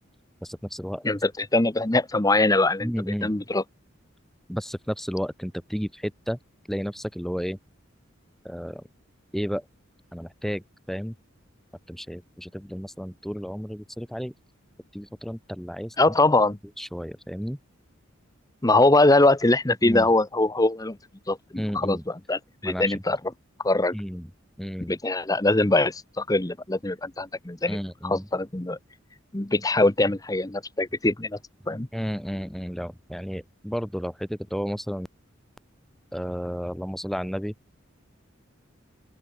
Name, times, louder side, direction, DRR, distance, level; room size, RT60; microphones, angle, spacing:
voice 1, 0.4-1.0 2.8-3.3 4.5-6.4 6.7-7.6 8.4-8.8 9.3-9.7 10.1-11.1 11.9-14.3 14.9-16.1 16.8-17.6 19.8-20.1 21.6-22.1 22.6-23.0 23.9-24.3 24.6-24.9 27.7-28.3 31.9-35.1 36.1-37.5, equal, ahead, 4.5 m, -32 dB
voice 2, 1.0-2.9 3.2-3.6 16.0-16.6 18.6-21.0 21.3-21.4 21.7-22.0 22.3-23.2 23.6-23.9 24.9-27.8 28.0-28.8 29.3-31.4 31.7-31.9, left 2 dB, 20° left, 1.0 m, -22 dB
open air
head